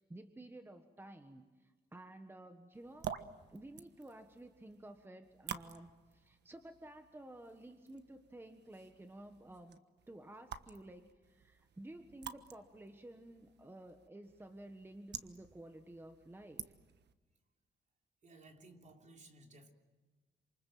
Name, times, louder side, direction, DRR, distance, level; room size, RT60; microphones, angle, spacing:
voice 1, 0.0-3.1 3.5-16.7, right 1 dB, 15° right, 7 dB, 1.5 m, -53 dB
sound 1, 2.7-17.1, right 8 dB, 80° right, 1.3 m, -51 dB
voice 2, 18.2-19.7, right 2 dB, 45° right, 3 dB, 3.3 m, -58 dB
28.0 x 27.0 x 7.7 m, 1.3 s
wide cardioid pair, 145°, 18 cm